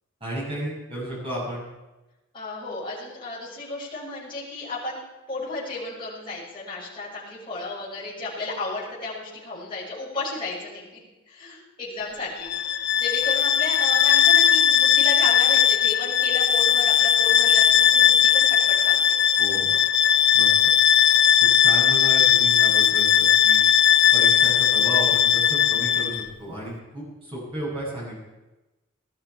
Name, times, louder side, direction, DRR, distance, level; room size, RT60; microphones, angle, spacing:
voice 1, 0.2-1.6 19.4-19.8 20.3-20.5 21.4-23.6 24.1-28.2, right 1 dB, 25° right, -5 dB, 7.4 m, -33 dB
voice 2, 2.3-5.0 5.3-12.5 12.9-19.0, left 2 dB, 25° left, -8 dB, 6.3 m, -33 dB
Bowed string instrument, 12.4-26.3, left 9 dB, 50° left, 0.5 m, -18 dB
19.0 x 13.0 x 4.8 m, 1.1 s
head